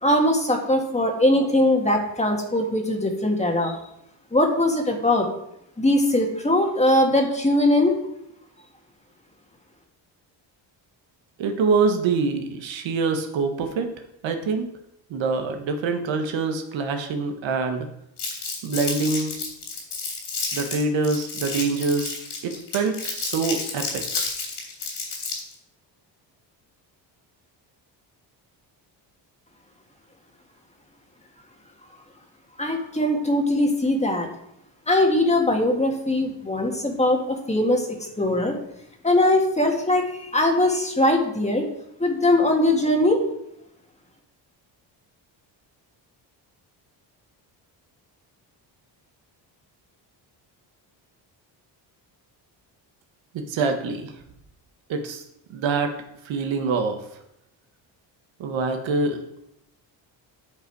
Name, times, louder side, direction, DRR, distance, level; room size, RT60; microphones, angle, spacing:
voice 1, 0.0-3.8 4.3-5.3 5.8-8.0 32.6-34.3 34.9-38.5 39.0-41.7 42.0-43.2, left 1 dB, 15° left, 2 dB, 1.7 m, -21 dB
voice 2, 11.4-13.9 14.2-14.7 15.1-17.9 18.6-19.4 20.5-22.1 22.4-24.3 53.3-54.1 54.9-55.2 55.5-55.9 56.2-57.0 58.4-59.2, right 4 dB, 80° right, 5 dB, 1.3 m, -25 dB
Crumpling crinkling, 18.2-25.5, left 4 dB, 65° left, 3.3 m, -31 dB
9.7 x 5.4 x 4.7 m, 0.79 s
cardioid pair, 100°, 45 cm